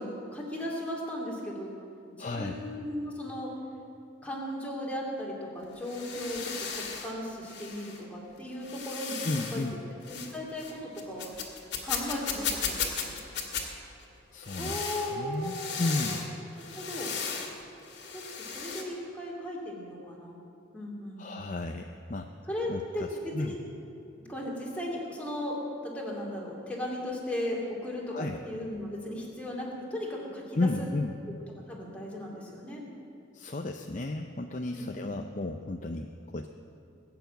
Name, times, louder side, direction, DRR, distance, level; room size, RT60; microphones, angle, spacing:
voice 1, 0.0-1.8 2.2-3.5 4.2-9.2 9.5-9.6 10.1-11.3 11.8-13.2 14.5-16.2 16.8-17.2 18.1-20.4 20.7-21.4 22.5-23.6 24.2-25.6 25.8-30.7 31.7-32.8 34.7-35.2, left 1 dB, 5° left, -3 dB, 2.6 m, -36 dB
voice 2, 2.2-2.5 9.2-9.7 14.3-14.8 15.1-16.3 21.2-22.3 22.7-23.5 28.1-28.4 30.6-31.1 33.3-36.5, left 2 dB, 40° left, 4 dB, 0.5 m, -33 dB
sound 1, 5.6-7.1 7.5-8.0 8.6-9.7 10.0-10.3 10.6-13.6 14.4-16.3 16.6-17.5 17.8-18.8, left 6 dB, 55° left, 2.1 m, -36 dB
20.5 x 7.0 x 9.1 m, 2.7 s
head